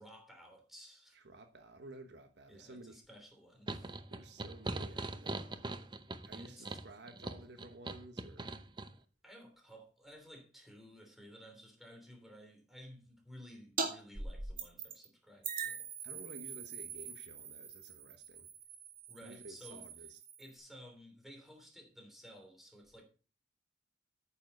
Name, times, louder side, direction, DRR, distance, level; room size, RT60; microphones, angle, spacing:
voice 1, 0.0-1.2 2.5-4.0 6.3-6.7 9.2-15.9 19.1-19.8 20.4-23.0, equal, ahead, 3.2 m, -55 dB
voice 2, 1.1-3.0 4.1-5.7 6.3-8.5 16.0-18.5 19.2-20.2, right 2 dB, 70° right, 1.2 m, -53 dB
sound 1, 3.7-8.9, right 2 dB, 25° right, 0.7 m, -41 dB
sound 2, 13.8-13.9 14.1-15.1 15.4-20.5, right 5 dB, 50° right, 2.1 m, -42 dB
9.3 x 7.2 x 5.3 m
head